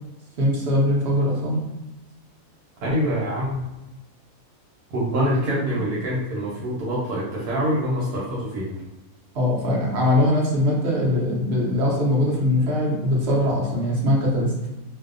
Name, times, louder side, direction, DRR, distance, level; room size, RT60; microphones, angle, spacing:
voice 1, 0.4-1.6 5.4-5.5 9.3-14.5, left 1 dB, 55° right, -3 dB, 0.8 m, -21 dB
voice 2, 2.8-3.6 4.9-8.8, equal, 85° right, -6 dB, 1.2 m, -25 dB
2.6 x 2.0 x 2.4 m, 1.0 s
omnidirectional pair, 1.6 m